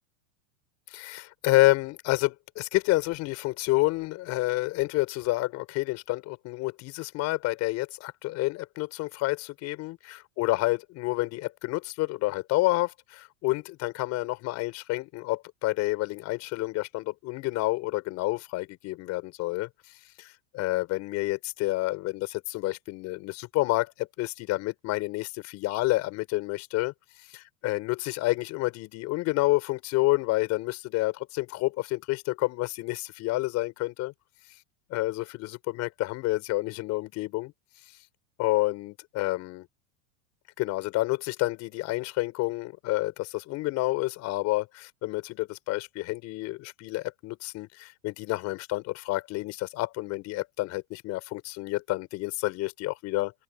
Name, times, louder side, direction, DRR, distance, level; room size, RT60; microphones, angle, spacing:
voice 1, 0.9-19.7 20.2-26.9 27.3-34.1 34.9-37.5 38.4-39.7 40.6-53.3, left 19 dB, 40° left, 5.2 m, -29 dB
open air
supercardioid pair, 150°, 40 cm